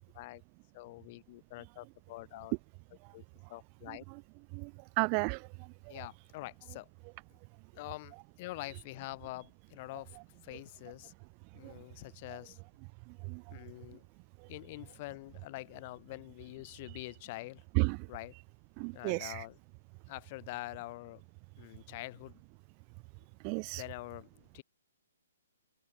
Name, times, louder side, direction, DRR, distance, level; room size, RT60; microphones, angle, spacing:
voice 1, 0.7-2.5 3.1-3.2 3.5-4.0 5.9-6.9 7.3-7.4 7.7-11.1 11.5-12.6 13.5-14.1 14.5-17.6 18.1-18.4 18.9-19.6 20.1-21.2 21.6-22.4 23.8-24.6, left 20 dB, 35° left, 5.5 m, -45 dB
voice 2, 3.9-4.2 4.5-4.7 5.0-5.5 5.9-6.1 8.6-8.8 11.6-11.7 12.3-12.4 13.3-13.4 16.7-17.0 17.7-18.1 18.3-18.4 18.8-19.5 23.4-23.8, right 40 dB or more, 30° right, 2.2 m, -34 dB
open air
hypercardioid pair, 155°, 0 cm